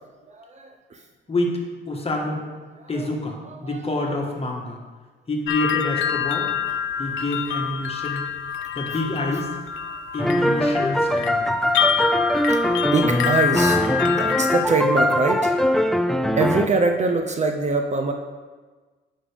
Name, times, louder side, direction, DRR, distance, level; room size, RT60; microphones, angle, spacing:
voice 1, 0.3-1.0 2.8-3.1 3.4-3.8 8.9-9.0 11.3-11.4 11.7-12.0 12.5-12.6 12.9-15.5 16.4-18.1, right 3 dB, 35° right, 4 dB, 0.6 m, -24 dB
voice 2, 1.9-2.4 2.9-4.8 5.3-6.5 7.0-8.2 8.7-9.5 10.1-11.4, left 2 dB, 30° left, 0 dB, 1.5 m, -27 dB
sound 1, 5.5-14.7, left 8 dB, 75° left, 0.5 m, -26 dB
sound 2, 10.2-16.7, equal, ahead, 0.3 m, -21 dB
9.7 x 5.5 x 3.5 m, 1.4 s
cardioid pair, 90°, 20 cm